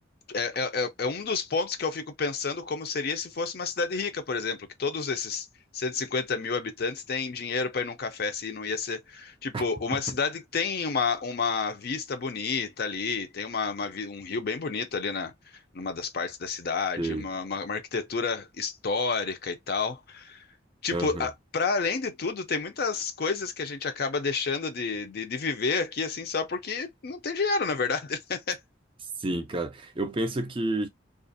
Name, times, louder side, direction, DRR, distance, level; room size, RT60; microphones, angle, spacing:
voice 1, 0.3-5.5 5.7-15.3 15.7-20.5 20.8-28.6, left 4 dB, 55° left, 0.5 m, -30 dB
voice 2, 20.9-21.3 29.2-30.9, right 2 dB, 30° right, 0.4 m, -30 dB
2.4 x 2.0 x 2.5 m
head